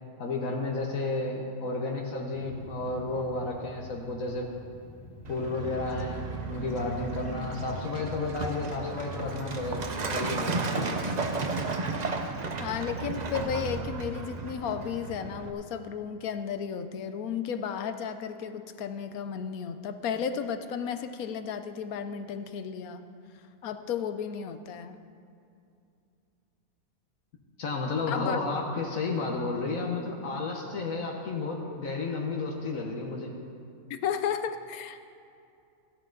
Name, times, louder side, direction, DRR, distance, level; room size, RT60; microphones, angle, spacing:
voice 1, 0.2-4.5 5.3-11.0 27.6-33.3, left 3 dB, 70° left, 0 dB, 1.5 m, -32 dB
sound 1, 2.3-9.3, left 2 dB, 20° left, 0.9 m, -48 dB
Truck, 5.2-15.5, right 3 dB, 40° right, 0.7 m, -34 dB
voice 2, 12.6-23.0 23.6-25.0 28.1-28.4 33.9-35.1, left 7 dB, 90° left, 9 dB, 1.2 m, -33 dB
15.0 x 11.0 x 3.9 m, 2.5 s
omnidirectional pair, 1.5 m